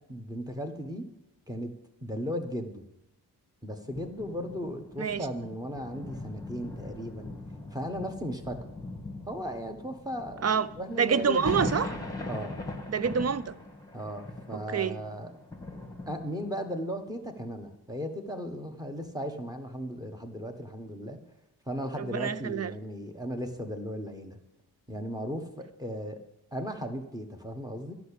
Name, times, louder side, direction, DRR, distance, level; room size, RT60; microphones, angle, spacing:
voice 1, 0.1-1.1 1.5-1.7 2.0-2.8 3.6-7.3 7.7-8.8 9.3-11.5 12.3-12.6 13.9-15.3 16.1-21.2 21.7-24.4 24.9-26.2 26.5-27.9, equal, 10° right, 1.4 m, -36 dB
sound 1, 3.9-16.7 17.4-17.5, left 2 dB, 10° left, 1.5 m, -40 dB
voice 2, 11.0-11.9 12.9-13.5 14.5-15.0 22.0-22.7, right 6 dB, 40° right, 0.5 m, -27 dB
12.0 x 6.0 x 8.5 m
wide cardioid pair, 100°, 40 cm